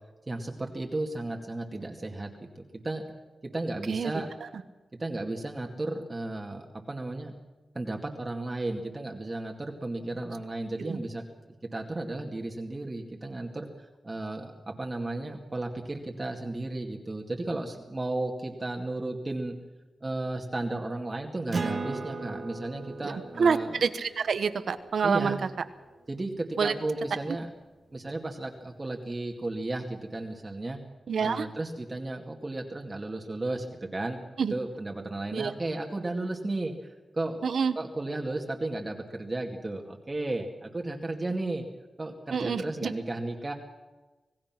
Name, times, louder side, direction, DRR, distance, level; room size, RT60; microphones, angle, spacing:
voice 1, 0.3-2.3 2.6-3.0 3.5-4.3 5.0-7.3 7.7-11.2 11.7-19.5 20.0-23.8 25.0-25.4 26.1-27.5 27.9-30.8 31.2-34.2 34.5-41.6 42.0-43.5, right 2 dB, 25° right, 2 dB, 2.2 m, -34 dB
Acoustic guitar, 21.5-26.5, right 3 dB, 50° right, 1.6 m, -38 dB
voice 2, 23.4-25.4 26.6-26.7 31.1-31.5 34.4-34.5 35.3-35.5 37.4-37.7 42.3-42.9, right 6 dB, 75° right, 11 dB, 1.3 m, -27 dB
26.0 x 17.5 x 6.0 m, 1.2 s
wide cardioid pair, 90°, 0 cm